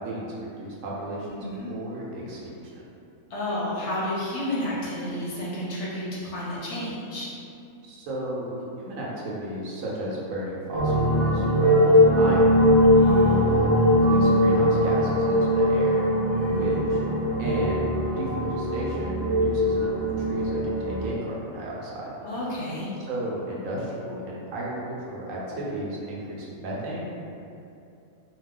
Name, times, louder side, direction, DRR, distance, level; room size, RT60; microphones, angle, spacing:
voice 1, 0.0-1.4 1.7-2.8 7.8-12.8 13.2-16.1 16.5-17.0 17.4-17.9 18.2-22.0 23.1-27.0, right 1 dB, 75° right, -5 dB, 1.0 m, -34 dB
voice 2, 1.4-1.7 3.3-7.3 12.9-13.4 16.3-16.9 22.2-22.9, left 1 dB, 65° left, -7 dB, 0.8 m, -31 dB
sound 1, 10.7-21.1, equal, 25° right, 0.6 m, -21 dB
2.4 x 2.3 x 3.5 m, 2.6 s
omnidirectional pair, 1.4 m